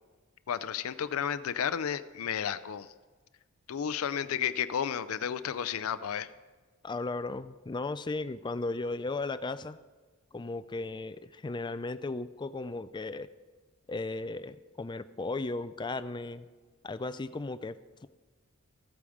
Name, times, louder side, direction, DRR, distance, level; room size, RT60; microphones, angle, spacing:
voice 1, 0.5-2.9 3.7-6.3, left 8 dB, 80° left, 14 dB, 0.5 m, -32 dB
voice 2, 6.8-9.8 10.3-13.3 13.9-16.5 16.8-17.8, left 3 dB, 20° left, 13 dB, 0.4 m, -36 dB
14.0 x 8.6 x 4.9 m, 1.4 s
head